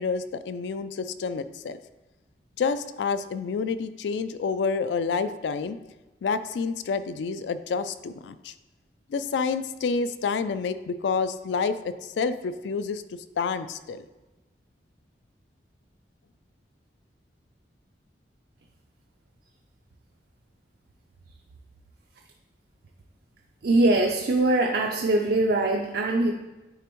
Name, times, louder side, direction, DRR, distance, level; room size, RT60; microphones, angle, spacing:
voice 1, 0.0-1.8 2.6-5.8 6.2-8.5 9.1-13.0 13.4-14.0, left 5 dB, 70° left, 13 dB, 0.3 m, -28 dB
voice 2, 23.6-26.3, right 2 dB, 60° right, 3 dB, 0.4 m, -22 dB
9.2 x 3.4 x 3.0 m, 1.1 s
head